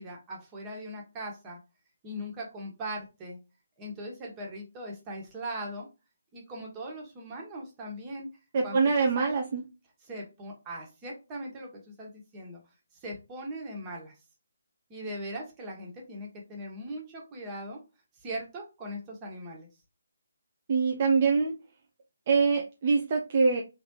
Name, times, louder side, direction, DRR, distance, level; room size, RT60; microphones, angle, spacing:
voice 1, 0.0-1.6 2.0-3.4 3.8-5.9 6.3-8.3 8.6-9.3 10.0-12.6 13.0-14.2 14.9-17.8 18.2-19.7, right 1 dB, 20° right, -1 dB, 1.6 m, -40 dB
voice 2, 8.5-9.6 20.7-21.5 22.3-23.6, right 4 dB, 40° right, 2 dB, 0.6 m, -24 dB
4.0 x 3.4 x 2.8 m, 0.28 s
figure-of-eight pair, 150°, 0 cm